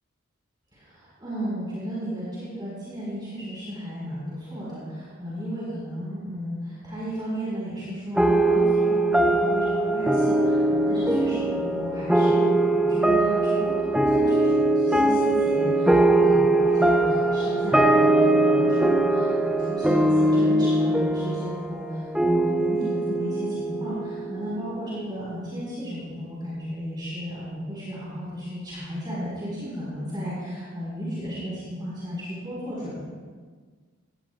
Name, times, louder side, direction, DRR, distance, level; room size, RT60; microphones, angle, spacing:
voice 1, 0.7-33.0, equal, 20° right, -9 dB, 4.6 m, -34 dB
sound 1, 8.2-25.0, right 2 dB, 5° right, 0.6 m, -21 dB
18.5 x 17.5 x 2.4 m, 1.6 s
head